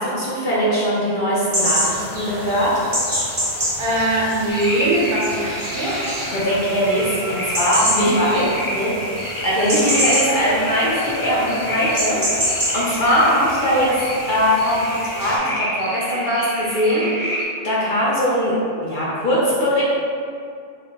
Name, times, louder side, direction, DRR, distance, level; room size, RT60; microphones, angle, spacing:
voice 1, 0.0-2.7 6.3-8.3 8.7-8.9 9.4-12.2 12.7-18.5 18.8-19.8, equal, 50° left, -7 dB, 0.7 m, -21 dB
sound 1, 1.5-15.4, equal, 20° right, 0.6 m, -27 dB
voice 2, 3.8-6.2 7.9-8.7 9.5-9.6, right 1 dB, 50° right, -7 dB, 0.9 m, -21 dB
sound 2, 4.5-17.4, equal, 30° left, 0.4 m, -29 dB
4.5 x 2.1 x 3.6 m, 2.4 s
omnidirectional pair, 1.2 m